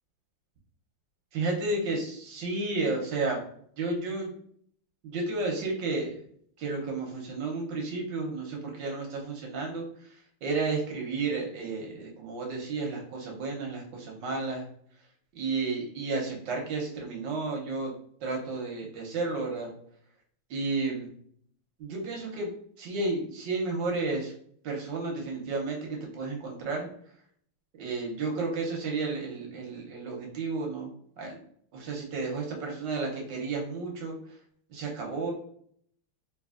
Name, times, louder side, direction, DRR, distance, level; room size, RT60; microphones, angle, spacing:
voice 1, 1.3-3.4 3.8-4.3 5.0-6.2 6.6-14.7 15.3-17.9 18.2-19.7 20.5-21.1 21.8-22.5 22.8-24.3 24.6-26.9 27.8-30.9 31.2-31.4 31.7-34.1 34.7-35.3, right 3 dB, 65° right, 0 dB, 1.2 m, -32 dB
4.1 x 2.9 x 2.4 m, 0.63 s
omnidirectional pair, 2.4 m